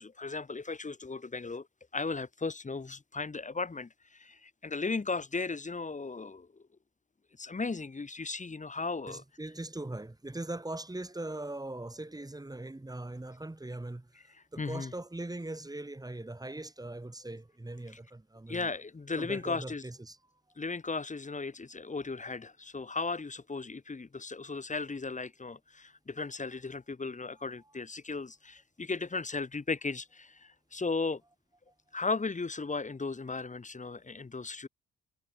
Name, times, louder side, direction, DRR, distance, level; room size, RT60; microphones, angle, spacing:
voice 1, 0.0-1.7 1.9-6.5 7.4-9.2 14.6-14.9 18.5-19.8 20.6-31.2 31.9-34.7, left 4 dB, 25° left, 3.2 m, -36 dB
voice 2, 9.1-18.8 19.2-20.2 27.6-27.7 31.7-31.8, right 2 dB, 10° right, 7.9 m, -41 dB
cardioid pair, 90°, 30 cm